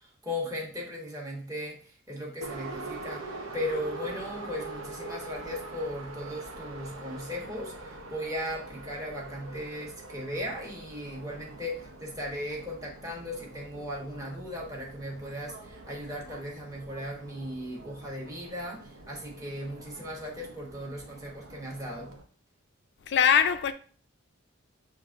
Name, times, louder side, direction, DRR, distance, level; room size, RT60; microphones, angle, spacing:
voice 1, 0.0-22.1, left 1 dB, 15° right, 1.2 m, -37 dB
Subway metro underground, 2.4-22.2, right 2 dB, 75° right, 0.7 m, -44 dB
voice 2, 23.0-23.7, left 8 dB, 55° left, 0.4 m, -22 dB
7.5 x 2.6 x 2.5 m
head